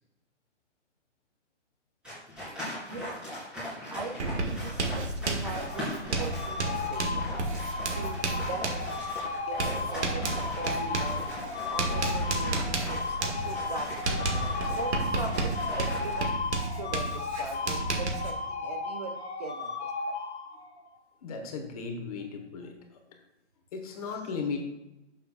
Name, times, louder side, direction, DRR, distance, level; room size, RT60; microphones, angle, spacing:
sound 1, 2.0-16.2, left 1 dB, ahead, 2.9 m, -40 dB
voice 1, 2.9-3.2 3.9-7.2 7.9-8.7 9.2-11.3 11.7-14.2 14.6-16.4 16.7-20.2 24.1-24.2, right 4 dB, 35° right, 5 dB, 0.5 m, -41 dB
Writing, 4.2-18.3, right 3 dB, 65° right, 1.7 m, -32 dB
sound 2, 5.6-20.9, left 4 dB, 60° left, 1.5 m, -35 dB
voice 2, 21.2-23.2 23.7-24.6, left 4 dB, 30° left, 3 dB, 1.1 m, -36 dB
11.0 x 6.7 x 2.3 m, 0.93 s
hypercardioid pair, 160°, 37 cm